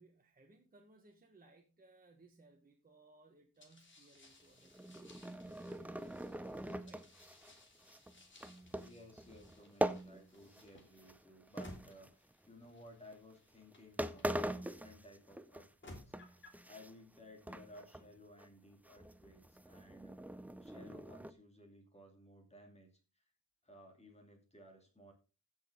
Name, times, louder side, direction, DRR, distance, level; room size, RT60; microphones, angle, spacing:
voice 1, 0.0-7.1, right 2 dB, 25° right, 2 dB, 1.4 m, -64 dB
sound 1, 3.6-14.9 15.5-16.7, left 1 dB, 35° left, 3.0 m, -60 dB
sound 2, 4.6-10.7 11.0-12.5 13.1-13.3 13.7-13.8 14.0-15.7 16.0-17.2 17.5-18.1 18.4-18.5 18.8-21.3, right 1 dB, 5° right, 0.5 m, -42 dB
voice 2, 8.7-16.1 16.7-22.9 23.1-23.2 23.6-25.1, left 1 dB, 20° left, 2 dB, 2.8 m, -58 dB
15.5 x 6.5 x 3.7 m, 0.32 s
wide cardioid pair, 145°, 33 cm